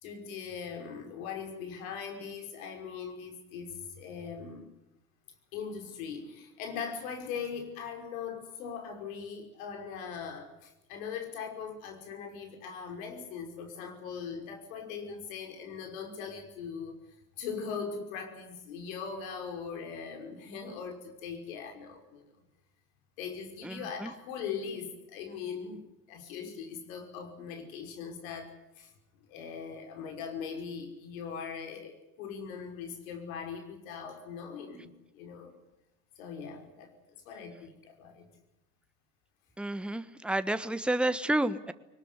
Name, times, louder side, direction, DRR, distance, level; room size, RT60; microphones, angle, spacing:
voice 1, 0.0-4.7 5.5-17.0 17.4-22.2 23.2-25.8 26.1-28.9 29.3-35.6 36.2-36.9 37.3-38.3, left 6 dB, 75° left, 5 dB, 5.5 m, -40 dB
voice 2, 23.6-24.1 39.6-41.7, right 1 dB, ahead, 11 dB, 1.4 m, -30 dB
22.0 x 20.0 x 9.8 m, 0.93 s
hypercardioid pair, 85°, 41 cm